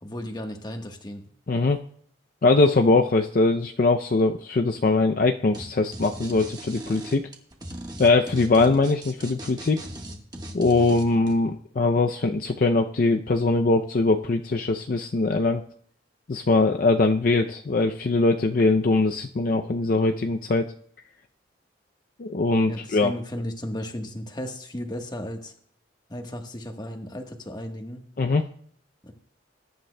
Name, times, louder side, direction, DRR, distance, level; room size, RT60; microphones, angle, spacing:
voice 1, 0.0-1.3 22.7-25.5 26.1-28.0 29.0-29.1, left 1 dB, 20° left, 4 dB, 1.2 m, -35 dB
voice 2, 1.5-1.8 2.4-7.3 8.0-9.9 10.5-15.6 16.3-20.7 22.2-23.1 28.2-28.5, left 3 dB, 50° left, 5 dB, 0.4 m, -22 dB
sound 1, 5.5-5.6 5.9-11.3, right 1 dB, 20° right, 1.3 m, -38 dB
20.5 x 10.5 x 2.2 m, 0.62 s
head